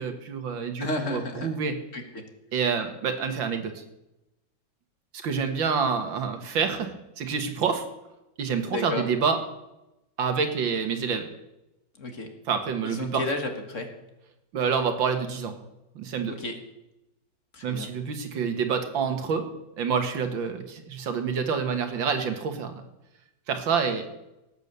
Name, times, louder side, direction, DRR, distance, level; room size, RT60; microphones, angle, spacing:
voice 1, 0.0-1.7 2.5-3.8 5.2-7.8 8.4-9.4 10.2-11.3 12.5-13.2 14.5-15.6 16.0-16.4 17.6-19.5 19.8-22.8 23.5-24.1, right 6 dB, 90° right, 7 dB, 2.2 m, -27 dB
voice 2, 0.8-1.5 1.9-2.2 8.7-9.1 12.0-12.3 12.8-13.9 16.3-16.6 17.5-17.9, left 2 dB, 45° left, 5 dB, 1.9 m, -32 dB
18.0 x 8.4 x 6.8 m, 0.93 s
omnidirectional pair, 2.0 m